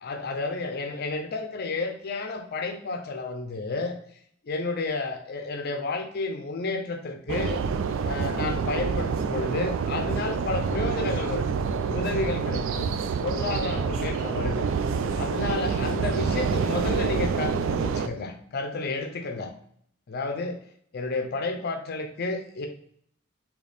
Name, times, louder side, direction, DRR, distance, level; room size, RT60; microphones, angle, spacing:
voice 1, 0.0-4.0 4.4-7.6 8.1-11.5 11.8-12.9 13.2-14.7 15.1-19.5 20.1-20.6 20.9-22.7, left 3 dB, 50° left, 5 dB, 0.5 m, -31 dB
sound 1, 7.3-18.1, right 5 dB, 65° right, 0.3 m, -27 dB
sound 2, 13.0-17.3, equal, 5° left, 1.2 m, -49 dB
4.0 x 2.9 x 3.4 m, 0.64 s
head